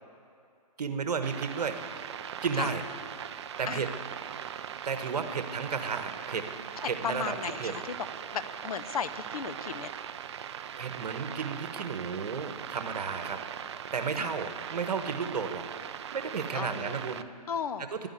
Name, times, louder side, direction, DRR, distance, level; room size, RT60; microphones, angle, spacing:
voice 1, 0.8-2.2 2.4-2.8 3.6-3.9 4.5-6.5 6.8-7.7 10.8-13.4 13.9-15.7 16.1-17.3 17.8-18.1, right 5 dB, 70° right, 8 dB, 1.3 m, -33 dB
sound 1, 1.2-17.2, right 9 dB, 45° right, 0.4 m, -40 dB
voice 2, 6.8-8.0 8.3-9.9 14.2-14.3 16.5-17.0 17.5-17.9, left 7 dB, 65° left, 13 dB, 0.7 m, -35 dB
11.5 x 9.3 x 9.5 m, 2.6 s
hypercardioid pair, 145°, 21 cm